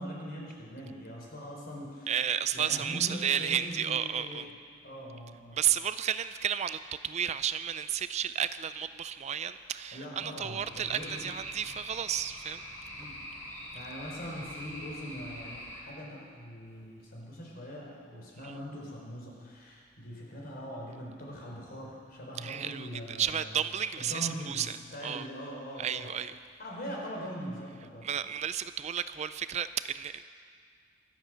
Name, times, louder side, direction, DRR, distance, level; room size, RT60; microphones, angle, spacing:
voice 1, 0.0-2.1 2.5-4.5 4.8-5.6 9.5-11.2 13.0-13.2 13.7-23.6 24.0-26.1 26.6-28.2, equal, 55° left, -2 dB, 4.1 m, -42 dB
voice 2, 2.1-4.5 5.5-12.6 18.4-18.5 22.4-24.7 25.0-25.3 25.8-26.4 28.0-30.2, right 9 dB, 35° right, 13 dB, 0.4 m, -32 dB
sound 1, 10.6-15.8, equal, 15° left, 3.5 m, -44 dB
23.5 x 8.3 x 6.3 m, 2.1 s
head